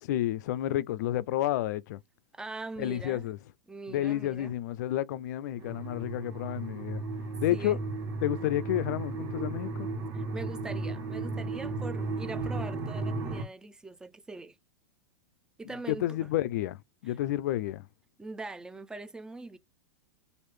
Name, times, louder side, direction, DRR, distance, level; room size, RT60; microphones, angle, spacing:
voice 1, 0.0-2.0 2.8-3.4 3.9-7.0 7.4-7.8 8.2-9.9 15.9-16.8 17.0-17.9, left 13 dB, 65° left, 0.4 m, -30 dB
voice 2, 2.3-3.3 3.7-4.6 7.5-7.8 10.1-14.6 15.6-16.3 18.2-19.6, right 3 dB, 5° right, 0.4 m, -42 dB
sound 1, 5.6-13.4, right 3 dB, 40° right, 1.6 m, -35 dB
3.1 x 2.5 x 3.2 m
hypercardioid pair, 125°, 10 cm